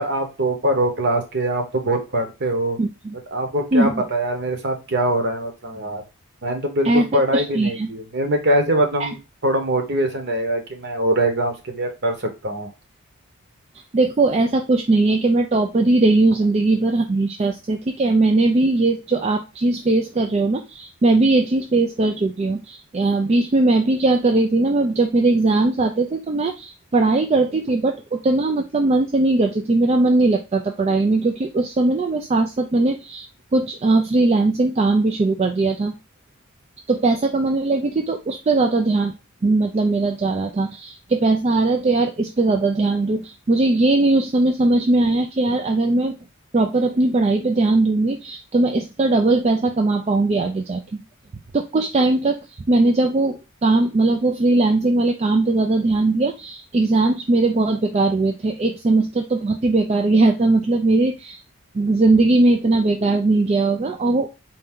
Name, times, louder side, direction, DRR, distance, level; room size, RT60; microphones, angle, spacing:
voice 1, 0.0-2.8 3.3-6.0 6.4-12.7, right 1 dB, 50° right, 5 dB, 0.9 m, -23 dB
voice 2, 2.8-3.1 3.7-4.0 6.8-7.9 9.0-9.1 13.9-33.3 33.5-35.9 36.9-39.1 39.4-46.1 46.5-51.0 51.5-52.4 52.7-61.4 61.7-64.3, right 2 dB, 30° right, 3 dB, 0.3 m, -19 dB
4.3 x 2.6 x 3.6 m, 0.28 s
head